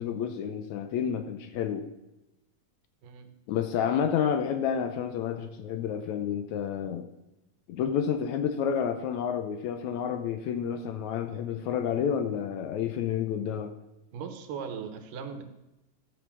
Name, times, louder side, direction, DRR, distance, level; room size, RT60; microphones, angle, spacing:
voice 1, 0.0-1.8 3.5-7.1 7.7-13.7, left 8 dB, 75° left, 7 dB, 1.9 m, -30 dB
voice 2, 14.1-15.5, right 6 dB, 80° right, 8 dB, 2.7 m, -38 dB
14.0 x 6.6 x 6.1 m, 0.95 s
omnidirectional pair, 3.8 m